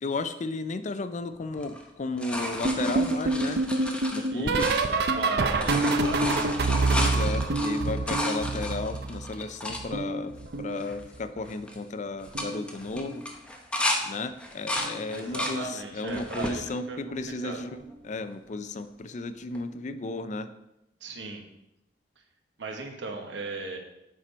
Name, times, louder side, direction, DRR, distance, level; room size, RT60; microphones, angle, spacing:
voice 1, 0.0-3.6 4.1-4.7 6.9-13.2 14.0-20.5, left 3 dB, 40° left, 11 dB, 0.4 m, -34 dB
sound 1, 1.5-5.2 5.5-9.8 10.4-10.5 10.7-11.2 11.4-11.8 12.2-14.0 14.4-15.6 16.1-16.6 17.2-17.9 19.5-19.6, left 1 dB, 5° left, 0.8 m, -33 dB
sound 2, 2.6-9.4 9.7-11.3 12.3-12.6 12.9-13.2 14.8-15.0 15.4-15.6 17.2-17.3, right 3 dB, 60° right, 0.6 m, -27 dB
voice 2, 4.3-6.5 15.1-17.6 21.0-21.4 22.6-23.8, right 3 dB, 80° right, 3 dB, 1.2 m, -37 dB
7.6 x 4.4 x 5.1 m, 0.86 s
head